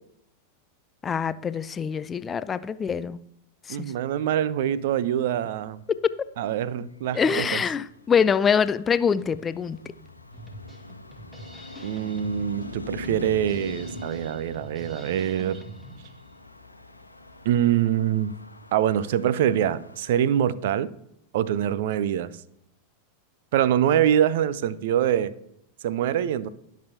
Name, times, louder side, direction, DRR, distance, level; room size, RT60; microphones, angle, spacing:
voice 1, 1.0-3.2 3.7-3.9 7.1-9.8, left 6 dB, 20° left, 0.4 m, -24 dB
voice 2, 3.7-5.8 6.4-7.6 11.8-15.6 17.4-18.3 18.7-20.9 21.3-22.3 23.5-25.3 25.8-26.5, right 10 dB, 55° right, 0.5 m, -24 dB
Traffic noise roadway noise, 6.7-20.5, left 2 dB, 85° left, 1.0 m, -43 dB
Drum kit, 10.3-16.3, equal, 5° right, 1.9 m, -45 dB
18.5 x 6.2 x 2.8 m
figure-of-eight pair, 90°, 0 cm